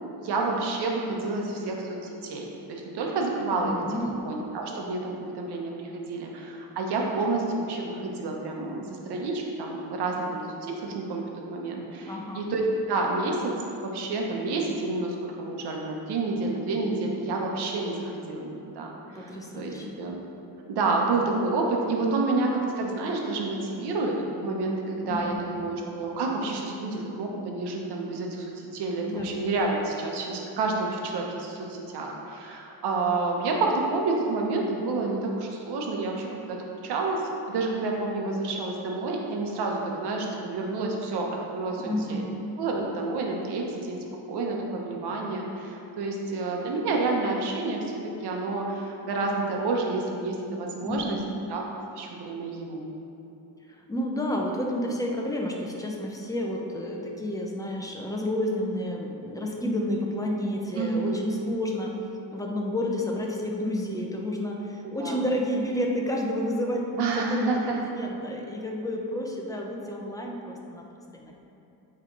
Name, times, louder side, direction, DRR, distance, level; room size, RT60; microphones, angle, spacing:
voice 1, 0.2-2.0 2.2-3.8 4.2-13.5 13.8-20.2 20.7-42.2 42.6-51.2 51.5-51.6 52.0-52.9 60.7-61.2 64.8-65.2 67.0-67.8, right 3 dB, 80° right, 0 dB, 1.0 m, -29 dB
voice 2, 3.5-4.2 12.1-12.4 19.1-20.0 25.0-25.4 29.1-29.3 41.8-42.4 50.8-51.4 53.7-61.9 62.3-70.9 71.1-71.4, left 1 dB, 10° left, -1 dB, 0.8 m, -30 dB
8.9 x 3.4 x 3.9 m, 2.8 s
cardioid pair, 95°, 39 cm